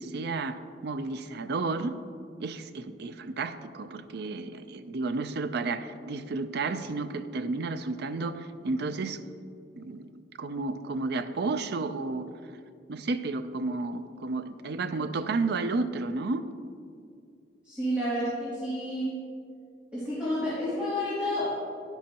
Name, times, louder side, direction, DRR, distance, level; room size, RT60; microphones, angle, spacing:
voice 1, 0.0-2.0 2.4-9.2 9.8-12.3 12.9-16.4, right 3 dB, 65° right, 10 dB, 0.5 m, -32 dB
voice 2, 17.6-19.2 19.9-21.5, equal, 5° right, -11 dB, 2.6 m, -30 dB
11.5 x 10.5 x 2.9 m, 2.3 s
head